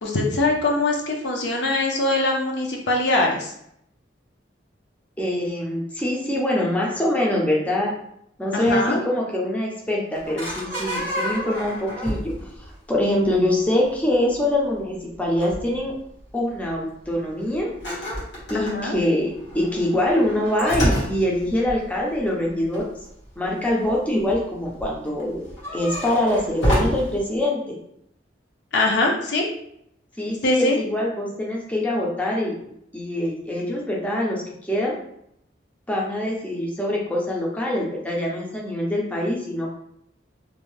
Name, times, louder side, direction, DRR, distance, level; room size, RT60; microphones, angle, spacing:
voice 1, 0.0-3.5 8.5-9.0 18.5-19.0 28.7-29.5 30.4-30.8, left 2 dB, 65° left, 0 dB, 0.6 m, -22 dB
voice 2, 5.2-7.9 8.4-12.3 12.9-15.9 16.3-17.7 18.5-19.3 19.5-22.9 23.4-25.4 25.7-27.8 30.2-35.0 35.9-39.7, left 1 dB, 10° left, -3 dB, 0.5 m, -24 dB
sound 1, 10.1-12.7 13.0-13.4 14.0-14.3 14.7-14.8 15.2-15.8 16.2-16.3 16.6-16.7 17.1-17.2 17.5-23.3 23.7-24.4 24.6-27.2, equal, 85° left, 1.3 m, -28 dB
2.6 x 2.1 x 3.1 m, 0.73 s
head